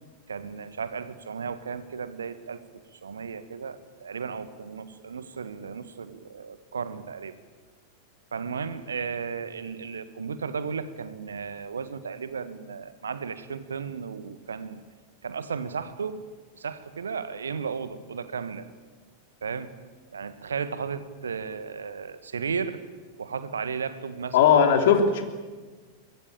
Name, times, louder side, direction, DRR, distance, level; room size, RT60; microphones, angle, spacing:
voice 1, 0.3-2.6 2.9-7.3 8.3-14.8 15.2-16.2 16.5-18.7 19.4-19.7 20.1-22.8 23.2-24.4, right 6 dB, 70° right, 13 dB, 1.6 m, -34 dB
voice 2, 24.3-25.2, left 7 dB, 55° left, 6 dB, 3.2 m, -18 dB
24.0 x 20.0 x 8.9 m, 1.4 s
figure-of-eight pair, 90°, 0 cm